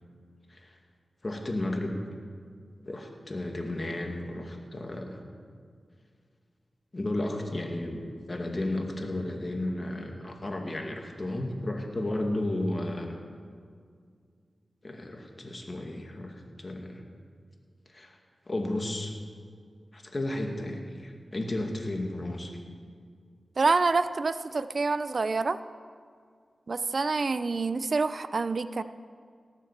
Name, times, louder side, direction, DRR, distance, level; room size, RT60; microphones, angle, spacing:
voice 1, 1.2-2.0 2.8-5.2 6.9-13.2 14.8-17.0 17.9-18.2 18.5-19.1 19.9-22.5, left 1 dB, 40° left, 3 dB, 2.2 m, -33 dB
voice 2, 23.6-25.6 26.7-28.8, right 3 dB, 60° right, 13 dB, 0.5 m, -27 dB
17.5 x 7.6 x 7.3 m, 2.1 s
cardioid pair, 50°, 0 cm